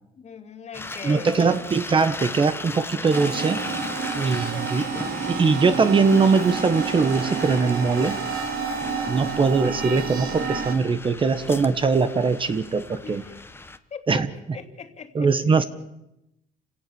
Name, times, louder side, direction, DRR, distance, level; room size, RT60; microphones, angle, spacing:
voice 1, 0.1-1.6 4.4-4.8 13.0-13.4 13.9-14.2 14.5-15.6, left 7 dB, 40° left, 7 dB, 2.6 m, -40 dB
sound 1, 0.7-13.8, left 3 dB, 15° left, 1.2 m, -37 dB
voice 2, 1.0-3.6 4.1-4.9 5.3-8.2 9.1-13.2 14.1-14.3 15.1-15.6, right 4 dB, 30° right, 11 dB, 1.4 m, -21 dB
sound 2, 3.1-10.7, right 5 dB, 65° right, 3.5 m, -30 dB
28.5 x 17.5 x 7.1 m, 0.87 s
cardioid pair, 110°, 17 cm